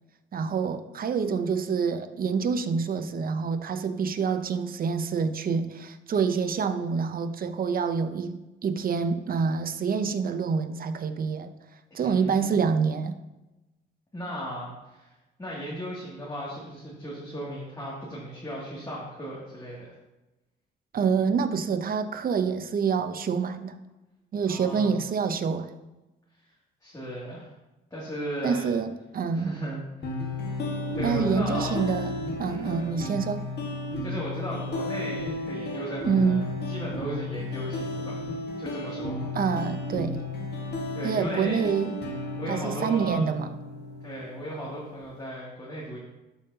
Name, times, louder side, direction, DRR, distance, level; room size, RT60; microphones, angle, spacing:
voice 1, 0.3-11.5 11.9-13.2 20.9-23.8 24.3-25.7 28.4-29.6 31.0-33.4 36.1-36.4 39.3-40.2 41.0-42.0 42.5-43.5, right 6 dB, 45° right, 10 dB, 0.7 m, -27 dB
voice 2, 12.0-12.5 14.1-15.1 15.4-19.9 24.5-25.0 26.8-27.5 27.9-28.6 29.3-30.2 30.9-31.8 32.5-32.8 34.0-38.2 38.6-39.2 40.9-41.7 42.3-43.2 44.0-46.0, equal, 20° left, -7 dB, 2.4 m, -36 dB
sound 1, 30.0-45.0, left 2 dB, 55° left, 1.7 m, -33 dB
12.5 x 5.5 x 2.8 m, 1.0 s
cardioid pair, 90°, 20 cm